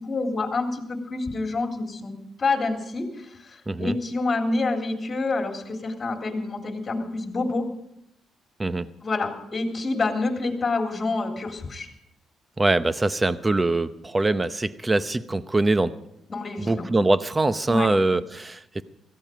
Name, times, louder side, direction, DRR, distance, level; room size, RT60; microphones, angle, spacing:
voice 1, 0.0-7.6 9.0-11.9 16.3-16.9 17.7-17.9, left 3 dB, 30° left, 3 dB, 3.4 m, -27 dB
voice 2, 3.7-4.0 8.6-8.9 12.6-16.0 16.6-18.8, right 2 dB, 20° right, 13 dB, 0.8 m, -23 dB
17.5 x 14.5 x 5.1 m, 0.79 s
cardioid pair, 90°, 0 cm